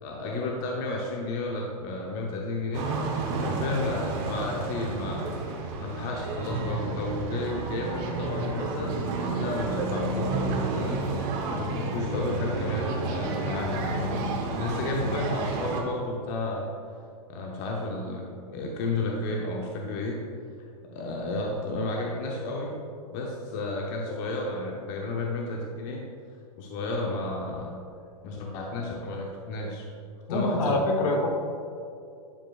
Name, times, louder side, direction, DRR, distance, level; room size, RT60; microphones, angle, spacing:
voice 1, 0.0-2.9 3.4-5.4 5.8-9.0 9.4-14.1 14.6-16.7 17.3-20.2 20.9-22.7 23.1-26.0 26.6-27.8 28.2-29.8 30.3-30.8, left 2 dB, 35° left, -1 dB, 0.8 m, -32 dB
sound 1, 2.7-15.8, right 3 dB, 40° right, 1.0 m, -30 dB
voice 2, 30.3-31.3, left 2 dB, 65° left, 2 dB, 1.3 m, -25 dB
11.5 x 5.2 x 2.4 m, 2.5 s
hypercardioid pair, 145°, 20 cm